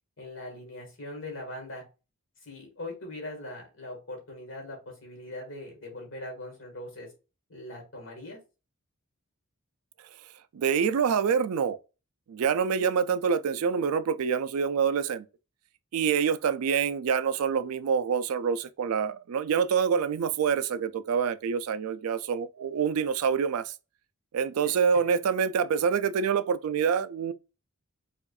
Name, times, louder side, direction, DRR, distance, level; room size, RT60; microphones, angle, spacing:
voice 1, 0.2-1.8 2.4-7.1 7.5-8.4 24.6-24.7, left 1 dB, 60° left, 1.7 m, -41 dB
voice 2, 10.5-11.8 12.3-15.2 15.9-23.7 24.3-27.3, right 6 dB, 85° right, 0.4 m, -26 dB
4.7 x 2.5 x 2.4 m
head